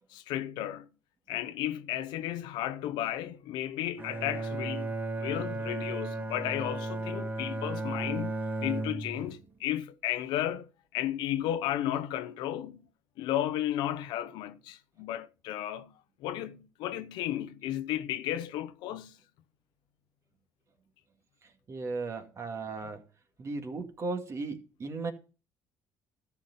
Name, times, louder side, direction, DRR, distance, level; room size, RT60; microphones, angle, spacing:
voice 1, 0.1-0.9 1.3-8.3 8.6-12.9 13.2-19.2, left 12 dB, 80° left, 0.8 m, -34 dB
Bowed string instrument, 4.0-9.4, right 2 dB, 25° right, 1.5 m, -35 dB
voice 2, 21.7-23.0 23.4-25.1, right 3 dB, 40° right, 2.2 m, -36 dB
13.0 x 6.0 x 5.4 m
supercardioid pair, 85°, 8 cm